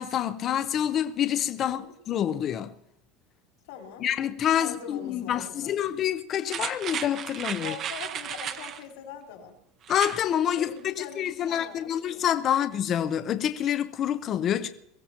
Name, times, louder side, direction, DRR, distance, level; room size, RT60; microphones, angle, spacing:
voice 1, 0.0-2.7 4.0-7.7 9.9-14.7, left 10 dB, 30° left, 0.7 m, -27 dB
voice 2, 1.6-1.9 3.7-4.1 4.6-5.8 6.5-6.6 7.6-9.6 10.5-12.3 12.5-12.7, left 7 dB, 85° left, 4.3 m, -43 dB
sound 1, 6.5-8.8 9.8-10.2 10.6-10.7, right 9 dB, 30° right, 0.8 m, -34 dB
22.5 x 15.5 x 2.9 m
cardioid pair, 170°, 0 cm